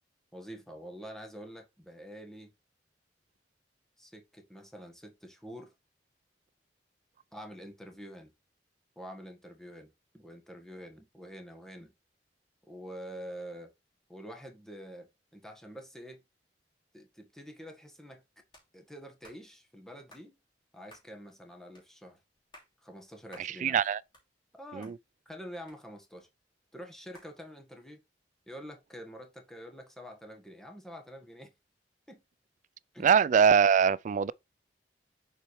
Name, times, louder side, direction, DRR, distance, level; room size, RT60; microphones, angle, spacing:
voice 1, 0.3-2.5 4.0-5.7 7.3-8.3 8.9-11.9 12.7-13.7 14.1-16.2 16.9-18.2 18.7-20.4 20.7-22.2 22.8-23.8 24.5-25.0 25.2-26.3 26.7-28.0 28.5-31.5 32.1-32.2 32.9-33.1, equal, 5° left, 1.4 m, -46 dB
sound 1, 18.5-18.7 19.2-19.4 20.1-20.3 20.9-21.1 21.8-21.9 22.4-22.7 23.3-23.5 23.9-24.6 24.8-25.0 25.7-26.2 27.1-27.3, left 1 dB, 25° left, 2.8 m, -55 dB
voice 2, 23.4-24.0 24.7-24.9 33.0-34.3, right 7 dB, 45° right, 0.3 m, -23 dB
7.1 x 4.5 x 3.2 m
head